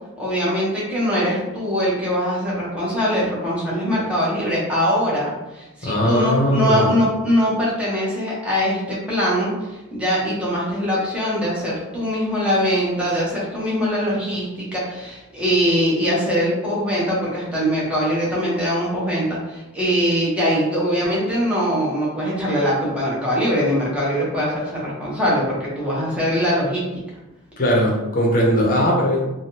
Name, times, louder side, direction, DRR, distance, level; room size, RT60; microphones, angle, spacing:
voice 1, 0.2-26.8, equal, 5° right, -7 dB, 0.8 m, -22 dB
voice 2, 5.8-7.0 27.6-29.2, equal, 40° left, -2 dB, 0.7 m, -19 dB
3.3 x 2.2 x 2.8 m, 1.0 s
head